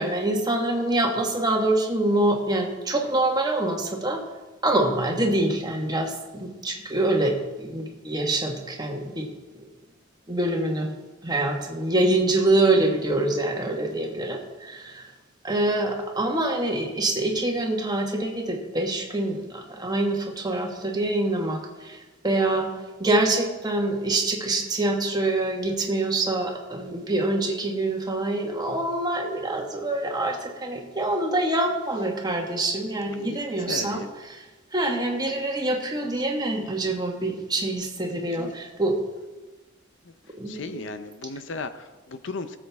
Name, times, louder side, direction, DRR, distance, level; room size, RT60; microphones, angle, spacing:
voice 1, 0.0-4.2 4.6-9.3 9.5-9.7 10.3-10.9 11.2-15.1 15.4-22.7 23.0-34.4 34.7-39.0 40.4-40.8, right 2 dB, 20° right, 1 dB, 1.5 m, -25 dB
voice 2, 33.1-34.1 38.4-38.6 40.5-42.6, left 3 dB, 60° left, 11 dB, 0.6 m, -36 dB
18.5 x 7.5 x 3.5 m, 1.2 s
head